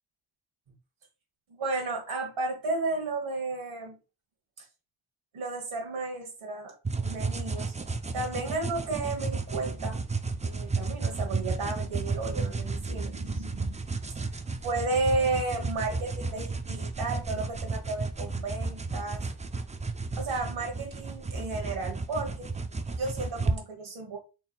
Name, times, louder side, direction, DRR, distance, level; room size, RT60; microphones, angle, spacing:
voice 1, 1.5-4.0 4.6-4.7 5.3-6.8 7.0-7.7 8.1-10.0 10.4-13.8 14.6-19.2 20.2-22.5 23.0-24.2, right 3 dB, 70° right, 1.3 m, -33 dB
sound 1, 6.8-23.6, right 3 dB, 15° right, 0.4 m, -33 dB
4.2 x 3.7 x 2.2 m
cardioid pair, 50°, 49 cm